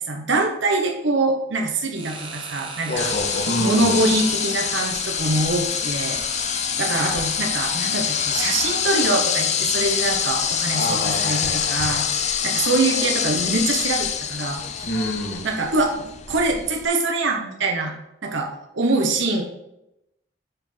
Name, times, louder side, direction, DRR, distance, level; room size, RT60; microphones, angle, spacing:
voice 1, 0.1-3.1 3.6-14.9 15.4-17.9 18.2-19.4, right 2 dB, 75° right, 1 dB, 1.1 m, -24 dB
sound 1, 1.9-12.0, right 3 dB, 25° right, 1.3 m, -37 dB
voice 2, 2.9-4.1 10.7-12.0 14.8-15.4, left 1 dB, 55° left, 1 dB, 1.7 m, -27 dB
sound 2, 3.0-16.8, left 8 dB, 35° left, 0.6 m, -25 dB
9.9 x 5.7 x 3.9 m, 0.87 s
head